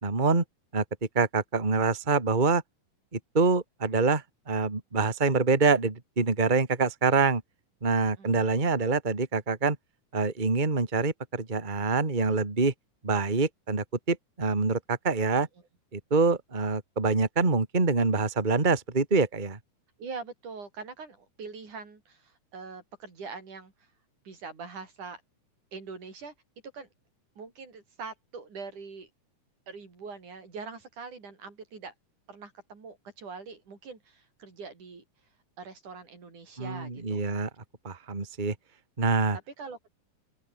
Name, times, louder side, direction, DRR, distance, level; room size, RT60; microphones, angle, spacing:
voice 1, 0.0-0.4 0.7-0.8 1.1-2.6 3.3-7.4 7.8-9.8 10.1-12.7 13.0-15.5 15.9-19.6 36.6-37.5 37.8-38.5 39.0-39.4, right 4 dB, 15° right, 2.3 m, -25 dB
voice 2, 8.0-8.5 20.0-23.7 24.2-25.2 25.7-26.3 26.7-26.9 27.4-29.1 29.7-31.9 32.3-35.0 35.6-37.2 39.6-39.9, right 4 dB, 75° right, 6.8 m, -43 dB
open air
omnidirectional pair, 3.5 m